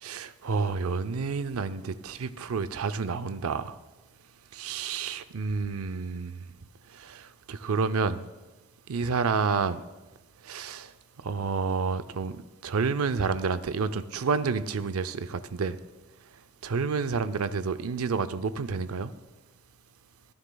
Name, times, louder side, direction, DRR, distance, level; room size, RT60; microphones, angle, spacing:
voice 1, 0.0-3.8 4.5-6.5 6.9-8.2 8.9-9.8 10.4-10.9 11.2-15.8 16.6-19.1, right 5 dB, 85° right, 12 dB, 0.5 m, -29 dB
14.5 x 9.6 x 2.3 m, 1.1 s
head